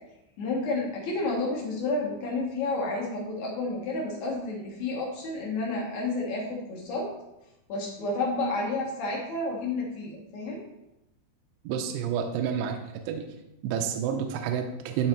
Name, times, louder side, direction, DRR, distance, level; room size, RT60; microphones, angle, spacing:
voice 1, 0.4-7.1 7.7-10.6, left 2 dB, 65° left, -3 dB, 1.9 m, -30 dB
voice 2, 11.6-13.3 13.6-15.1, right 8 dB, 80° right, 3 dB, 2.5 m, -29 dB
11.0 x 3.9 x 4.4 m, 0.91 s
omnidirectional pair, 5.1 m